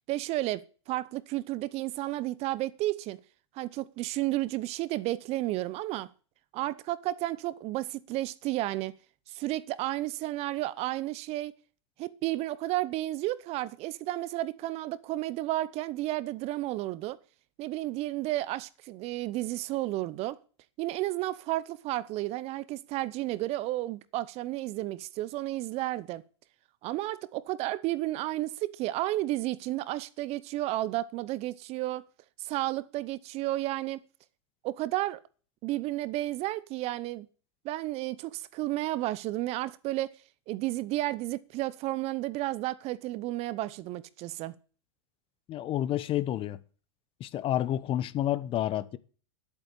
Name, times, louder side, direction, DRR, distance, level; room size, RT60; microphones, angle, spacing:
voice 1, 0.1-3.2 3.5-6.1 6.5-9.0 9.3-11.5 12.0-17.2 17.6-20.4 20.8-26.2 26.8-32.0 32.4-34.0 34.6-35.2 35.6-37.3 37.6-40.2 40.5-44.5, right 16 dB, 40° right, 0.8 m, -32 dB
voice 2, 45.5-46.6 47.2-49.0, left 12 dB, 35° left, 1.0 m, -29 dB
11.0 x 8.6 x 8.5 m
hypercardioid pair, 110°, 16 cm